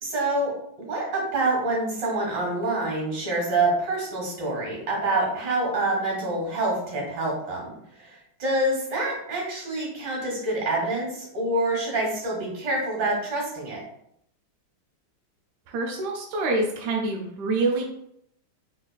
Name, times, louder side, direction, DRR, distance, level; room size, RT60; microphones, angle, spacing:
voice 1, 0.0-0.5 0.9-13.8, right 2 dB, 55° right, -2 dB, 2.0 m, -26 dB
voice 2, 15.7-17.8, right 2 dB, 75° right, 0 dB, 0.9 m, -26 dB
3.8 x 3.2 x 2.2 m, 0.73 s
omnidirectional pair, 2.3 m